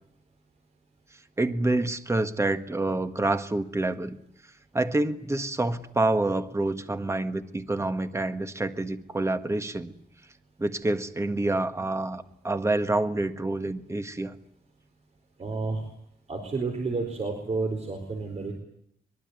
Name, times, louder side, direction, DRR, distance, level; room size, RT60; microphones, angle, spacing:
voice 1, 1.4-4.2 4.7-9.9 10.6-14.3, right 2 dB, 15° right, 9 dB, 1.6 m, -27 dB
voice 2, 15.4-15.9 16.3-18.5, right 3 dB, 45° right, 4 dB, 4.4 m, -30 dB
23.5 x 22.5 x 9.6 m, 0.73 s
wide cardioid pair, 145°, 16 cm